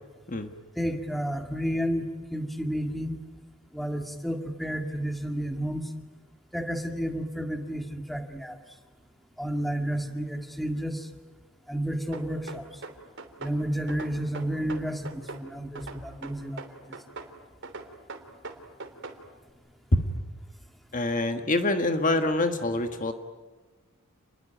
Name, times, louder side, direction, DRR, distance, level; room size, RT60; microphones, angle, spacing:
voice 1, 0.8-3.2 3.7-5.9 6.5-8.6 9.4-11.1 11.7-12.6 13.4-16.6, equal, ahead, 5 dB, 2.0 m, -31 dB
sound 1, 12.1-13.6 13.9-15.5 15.8-17.3 17.6-19.2, right 3 dB, 60° right, 3.2 m, -41 dB
voice 2, 20.9-23.1, left 2 dB, 40° left, 7 dB, 1.5 m, -25 dB
29.0 x 21.5 x 9.1 m, 1.3 s
head